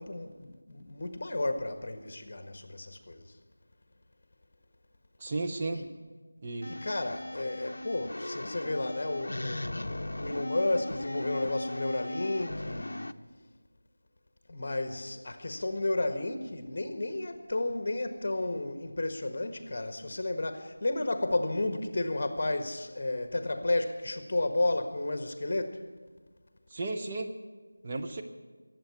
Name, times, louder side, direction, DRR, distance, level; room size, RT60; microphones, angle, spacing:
voice 1, 0.0-3.2 5.7-5.8 6.7-13.1 14.5-25.8, left 2 dB, 40° left, 1.4 m, -32 dB
voice 2, 5.2-5.8 6.4-6.7 26.7-27.3 27.8-28.2, right 2 dB, 25° right, 0.9 m, -34 dB
sound 1, 6.6-13.1, left 1 dB, 65° left, 0.6 m, -38 dB
21.0 x 8.0 x 8.4 m
figure-of-eight pair, 170°, 0 cm